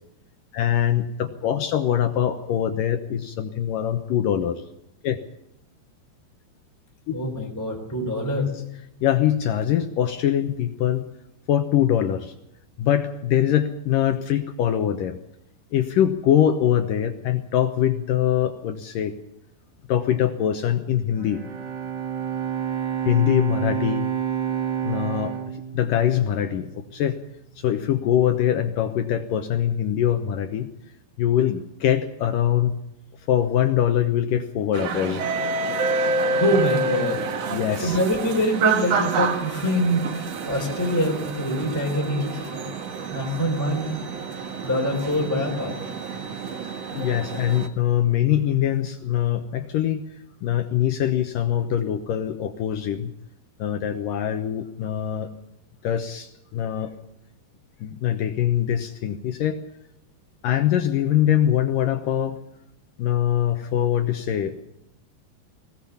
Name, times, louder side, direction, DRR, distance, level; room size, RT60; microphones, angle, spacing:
voice 1, 0.5-4.6 5.0-5.2 7.1-7.2 9.0-11.1 11.5-12.3 12.8-15.2 15.7-19.1 19.9-21.4 23.1-24.1 24.8-25.3 25.7-27.2 27.6-30.7 31.2-32.8 33.3-35.2 37.5-38.0 46.9-50.0 50.4-53.1 53.6-55.3 55.8-56.9 57.8-59.6 60.4-62.4 63.0-64.7, left 10 dB, 75° left, 7 dB, 2.0 m, -23 dB
voice 2, 7.1-8.5 36.3-37.5 37.8-42.5 43.1-44.0 44.6-45.8, equal, 5° left, 0 dB, 2.7 m, -25 dB
Bowed string instrument, 21.1-26.5, right 9 dB, 45° right, 4.0 m, -29 dB
sound 1, 34.7-47.7, right 4 dB, 75° right, 1.5 m, -28 dB
20.5 x 18.0 x 7.2 m, 0.82 s
omnidirectional pair, 5.3 m